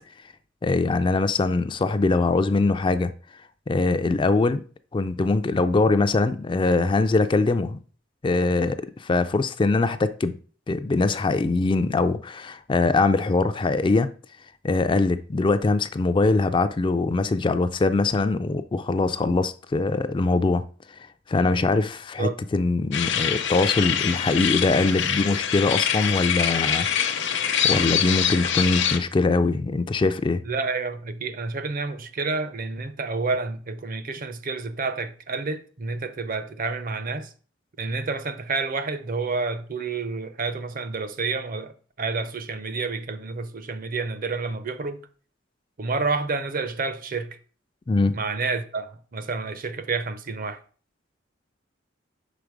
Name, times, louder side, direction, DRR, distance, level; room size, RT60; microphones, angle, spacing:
voice 1, 0.6-3.1 3.7-4.6 4.9-7.8 8.2-10.4 10.7-14.1 14.6-20.6 21.3-26.9 27.6-30.4 47.9-48.2, left 3 dB, 25° left, 0.3 m, -22 dB
sound 1, 22.9-29.0, left 9 dB, 65° left, 0.8 m, -24 dB
voice 2, 30.4-37.3 37.8-45.0 45.8-47.4 48.1-50.6, right 4 dB, 45° right, 0.6 m, -29 dB
5.8 x 5.1 x 4.6 m
head